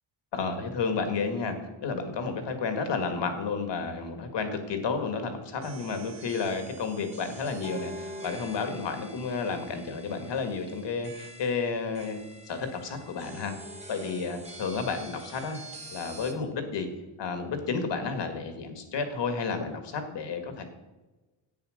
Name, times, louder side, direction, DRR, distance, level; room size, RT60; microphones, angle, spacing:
voice 1, 0.3-1.6 1.8-13.6 13.9-15.6 15.9-16.9 17.2-20.6, left 4 dB, 60° left, 7 dB, 2.0 m, -31 dB
sound 1, 5.6-16.3, right 1 dB, 15° right, 1.6 m, -46 dB
10.5 x 8.8 x 6.5 m, 1.1 s
cardioid pair, 145°, 47 cm